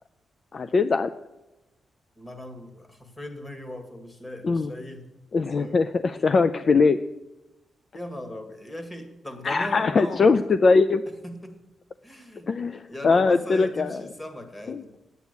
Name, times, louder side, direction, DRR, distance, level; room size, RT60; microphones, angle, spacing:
voice 1, 0.5-1.1 4.4-4.7 5.3-7.0 9.4-11.0 12.5-14.0 14.7-14.8, left 4 dB, 45° left, 11 dB, 0.4 m, -21 dB
voice 2, 2.2-5.1 5.6-5.8 7.9-10.4 11.2-11.6 12.0-12.5 12.9-14.9, left 1 dB, 15° left, 7 dB, 1.9 m, -38 dB
9.1 x 8.3 x 8.1 m, 1.0 s
cardioid pair, 100°, 0 cm